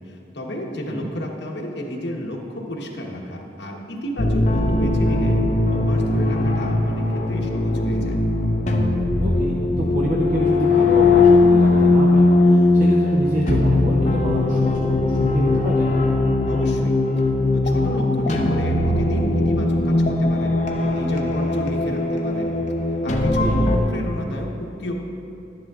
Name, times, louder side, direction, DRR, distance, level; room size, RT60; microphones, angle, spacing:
voice 1, 0.1-5.4 5.7-8.2 16.4-16.9 17.5-20.6 20.9-22.5 22.9-24.9, left 1 dB, 70° left, -1 dB, 1.1 m, -31 dB
sound 1, 4.2-23.8, left 2 dB, 40° left, 0.7 m, -19 dB
voice 2, 9.2-15.8 23.4-23.6, right 1 dB, 45° right, -3 dB, 0.7 m, -27 dB
11.5 x 10.5 x 2.4 m, 2.7 s
head